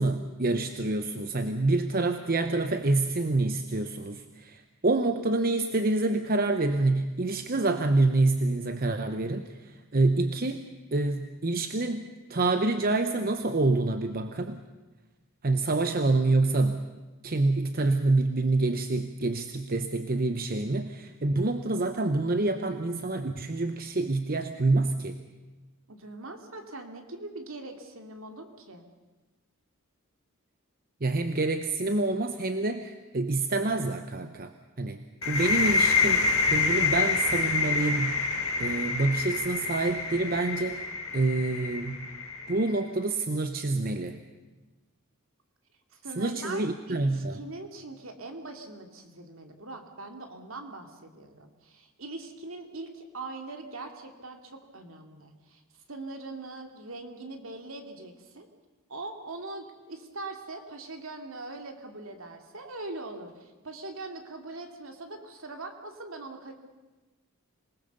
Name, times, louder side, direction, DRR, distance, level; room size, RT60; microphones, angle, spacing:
voice 1, 0.0-10.6 10.9-12.0 12.3-14.6 15.4-16.9 17.2-25.2 31.0-38.2 38.6-40.9 41.1-42.0 42.5-44.2 46.2-47.4, right 2 dB, 40° right, 8 dB, 0.9 m, -27 dB
voice 2, 25.9-28.8 46.0-55.6 55.9-58.5 58.9-66.5, right 2 dB, 65° right, 4 dB, 2.5 m, -42 dB
sound 1, 35.2-42.8, left 4 dB, 75° left, 2.7 m, -27 dB
26.0 x 19.0 x 6.9 m, 1.2 s
head